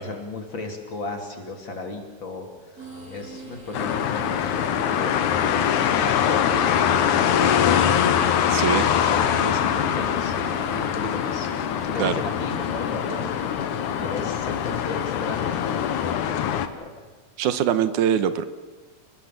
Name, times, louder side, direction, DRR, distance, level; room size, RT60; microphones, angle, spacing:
voice 1, 0.0-11.5 11.9-16.9, left 3 dB, 35° left, 3 dB, 3.7 m, -35 dB
sound 1, 2.8-16.1, right 1 dB, 25° right, 5.4 m, -42 dB
sound 2, 3.7-16.7, left 9 dB, 70° left, 2.6 m, -23 dB
voice 2, 8.5-8.9 12.0-12.1 17.4-18.4, right 9 dB, 75° right, 12 dB, 2.4 m, -22 dB
28.5 x 20.5 x 7.7 m, 1.3 s
omnidirectional pair, 3.7 m